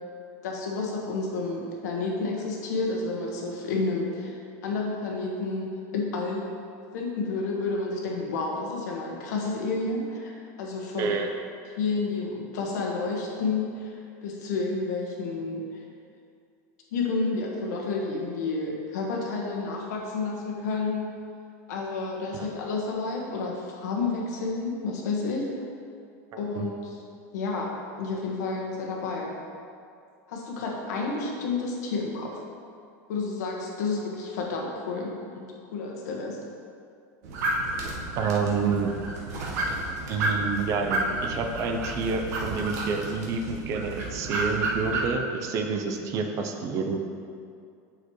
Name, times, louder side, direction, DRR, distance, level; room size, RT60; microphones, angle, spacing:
voice 1, 0.4-4.4 4.6-6.5 6.9-11.2 11.8-15.8 16.9-21.1 21.7-25.6 26.4-27.0 27.3-29.4 30.3-32.4 33.1-35.4 35.7-36.4, left 3 dB, 85° left, -1 dB, 1.4 m, -30 dB
voice 2, 11.0-11.3 22.3-22.4 26.6-26.7 38.2-38.9 40.1-47.0, right 5 dB, 35° right, 4 dB, 0.6 m, -28 dB
sound 1, 37.2-45.1, right 2 dB, 70° right, 1.3 m, -31 dB
7.5 x 6.6 x 3.1 m, 2.4 s
supercardioid pair, 160°, 9 cm